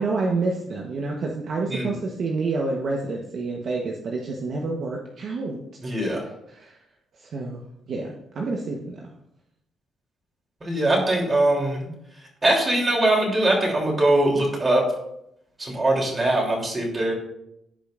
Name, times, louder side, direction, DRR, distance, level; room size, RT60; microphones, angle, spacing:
voice 1, 0.0-5.6 6.5-6.8 7.2-7.6 7.9-9.1, right 3 dB, 60° right, 0 dB, 1.1 m, -28 dB
voice 2, 5.8-6.2 10.6-11.9 12.4-14.8 15.6-17.1, right 1 dB, 30° right, -1 dB, 3.1 m, -22 dB
15.5 x 5.2 x 2.5 m, 0.80 s
cardioid pair, 90°, 0 cm